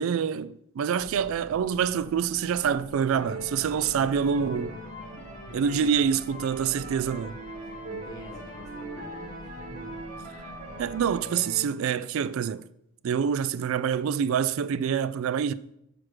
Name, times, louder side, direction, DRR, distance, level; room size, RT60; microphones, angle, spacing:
voice 1, 0.0-4.8 5.5-7.4 10.8-12.6 13.0-15.5, right 7 dB, 65° right, 0.3 m, -26 dB
sound 1, 1.0-11.1, left 1 dB, 65° left, 0.8 m, -48 dB
sound 2, 3.1-11.7, right 2 dB, 35° right, 3.2 m, -41 dB
voice 2, 5.5-5.9 7.6-10.0, equal, 15° left, 1.3 m, -46 dB
6.3 x 5.9 x 4.8 m
head